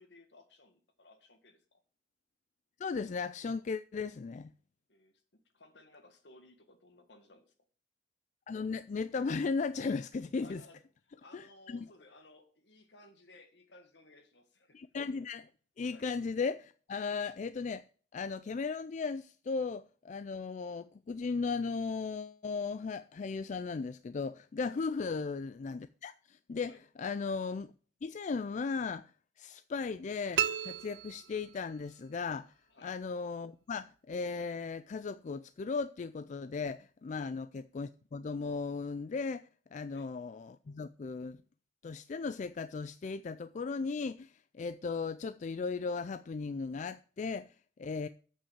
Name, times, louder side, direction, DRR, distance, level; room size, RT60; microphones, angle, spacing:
voice 1, 0.0-1.8 4.9-5.1 5.5-7.5 10.4-10.8 11.2-14.8 15.9-16.1 24.7-24.9 26.6-26.8 32.7-32.9 37.1-37.4 39.9-40.1, left 2 dB, 70° left, 1.7 m, -59 dB
voice 2, 2.8-4.5 8.5-10.6 11.3-11.9 14.7-15.5 15.8-17.8 18.1-26.7 27.0-27.7 28.0-29.1 29.4-32.5 32.8-41.4 41.8-48.1, left 4 dB, 45° left, 0.4 m, -36 dB
sound 1, 30.4-31.9, right 9 dB, 80° right, 0.5 m, -34 dB
8.5 x 5.5 x 7.3 m
head